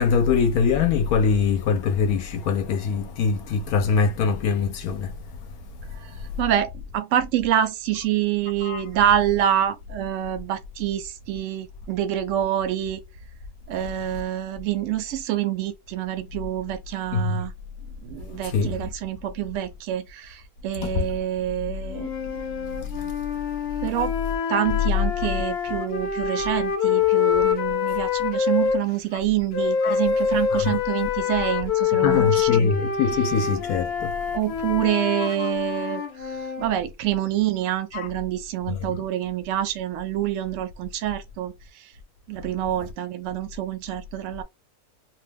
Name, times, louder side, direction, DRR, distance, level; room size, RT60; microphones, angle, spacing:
voice 1, 0.0-5.1 8.6-8.8 17.1-17.4 18.4-18.8 20.8-21.0 29.8-30.0 30.5-30.8 32.0-34.1 35.2-35.5 37.9-38.1 38.7-38.8, left 5 dB, 80° left, 1.0 m, -23 dB
voice 2, 6.4-13.0 13.7-17.5 18.0-23.1 23.8-24.1 24.5-32.7 34.3-41.5 42.3-44.4, right 11 dB, 65° right, 0.8 m, -27 dB
sound 1, 21.9-28.8 29.5-36.7, left 7 dB, 55° left, 0.7 m, -25 dB
2.6 x 2.2 x 3.3 m
omnidirectional pair, 1.6 m